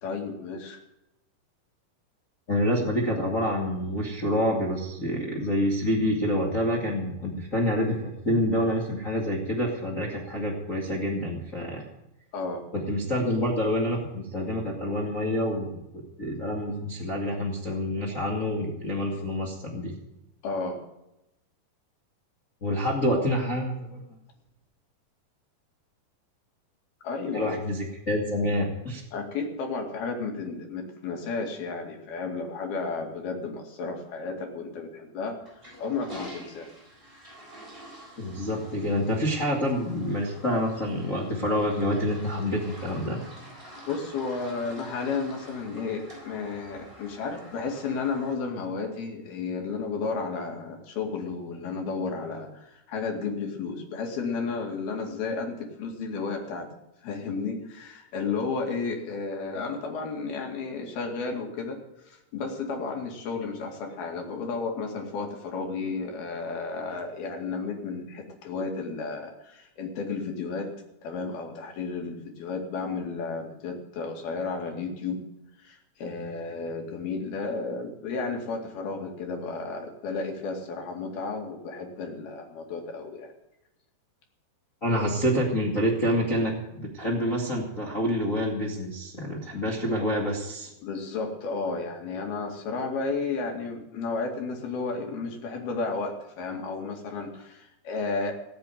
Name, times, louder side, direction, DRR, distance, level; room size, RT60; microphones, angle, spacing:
voice 1, 0.0-0.8 12.3-12.6 20.4-20.8 27.0-27.6 29.1-35.4 35.8-36.7 43.9-56.7 57.0-61.8 62.1-70.7 71.0-75.2 75.6-83.3 90.8-98.3, left 4 dB, 70° left, 2 dB, 4.1 m, -32 dB
voice 2, 2.5-11.8 12.7-15.8 16.2-19.9 22.6-24.0 27.3-29.0 38.2-43.2 84.8-90.7, equal, 25° left, -3 dB, 1.9 m, -27 dB
Toilet flush, 35.4-48.4, equal, 10° right, 7.1 m, -47 dB
18.5 x 7.5 x 9.2 m, 0.90 s
omnidirectional pair, 4.7 m